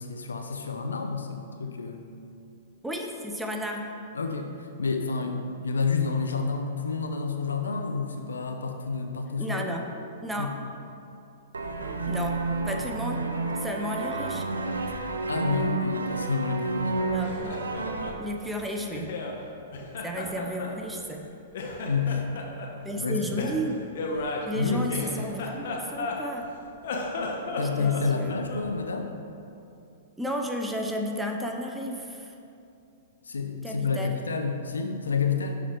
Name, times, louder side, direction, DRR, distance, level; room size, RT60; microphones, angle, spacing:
voice 1, 0.0-2.0 4.1-9.6 10.4-10.5 15.3-16.9 21.8-22.2 23.0-23.5 24.5-25.2 27.4-29.1 33.2-35.5, left 4 dB, 85° left, 5 dB, 0.7 m, -29 dB
voice 2, 2.8-3.9 9.4-9.8 10.2-10.5 12.1-12.4 12.7-13.2 13.6-14.4 17.1-17.5 18.2-19.1 20.0-21.2 22.8-23.8 24.4-26.5 26.9-27.0 27.8-27.9 28.2-28.3 30.2-32.3 33.6-34.1, equal, 5° right, 2 dB, 0.8 m, -32 dB
sound 1, 11.5-18.1, right 3 dB, 85° right, 0.6 m, -30 dB
Laughter, 17.1-19.4 19.7-21.3 21.5-22.7 23.4-26.5 26.8-28.7, left 3 dB, 65° left, 1.1 m, -35 dB
7.1 x 5.8 x 4.6 m, 2.6 s
hypercardioid pair, 115°, 0 cm